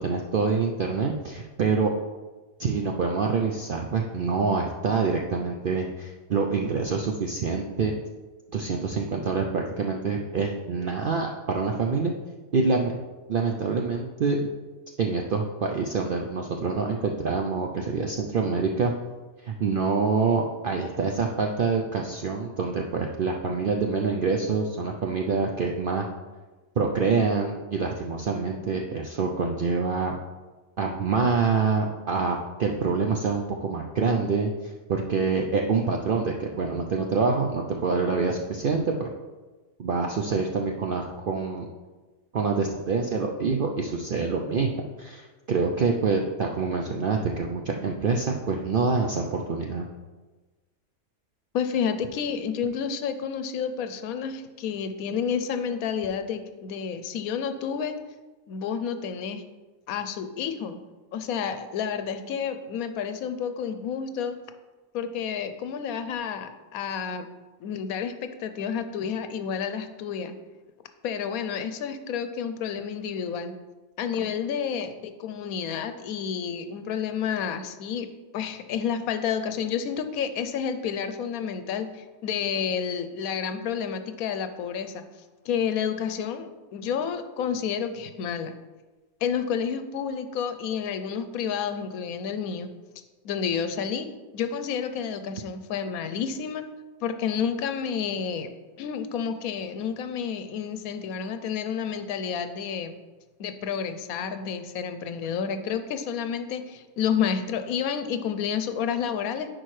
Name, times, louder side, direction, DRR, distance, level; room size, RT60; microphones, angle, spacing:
voice 1, 0.0-1.9 2.6-7.9 8.5-12.1 12.5-12.9 13.3-14.4 15.0-18.9 19.4-26.1 26.8-30.2 30.8-39.1 39.8-41.7 42.3-49.9, right 4 dB, 65° right, 1 dB, 0.5 m, -26 dB
voice 2, 51.5-57.9 58.5-59.4 59.9-60.8 61.1-64.3 64.9-67.3 67.6-70.3 71.0-73.5 74.0-78.1 78.3-85.0 85.4-88.5 89.2-92.7 93.2-94.1 94.3-96.6 97.0-98.5 98.8-103.0 103.4-109.5, left 7 dB, 80° left, 9 dB, 1.0 m, -30 dB
10.0 x 4.5 x 3.2 m, 1.2 s
omnidirectional pair, 1.5 m